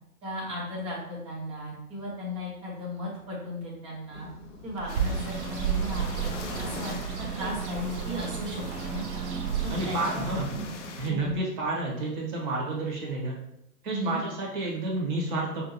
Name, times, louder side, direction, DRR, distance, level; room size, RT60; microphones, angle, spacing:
voice 1, 0.2-4.3 4.6-9.2 9.6-10.3 11.1-11.7 13.9-14.2, left 1 dB, 10° right, -5 dB, 0.8 m, -36 dB
sound 1, 4.1-11.4, right 1 dB, 25° left, 1.0 m, -44 dB
Bird, 4.8-10.7, right 7 dB, 45° right, 0.7 m, -32 dB
sound 2, 4.9-11.1, left 5 dB, 50° left, 0.6 m, -42 dB
voice 2, 9.7-10.5 11.0-13.4 13.8-15.6, right 2 dB, 30° right, -2 dB, 1.2 m, -30 dB
5.2 x 2.7 x 3.0 m, 0.83 s
figure-of-eight pair, 125°, 47 cm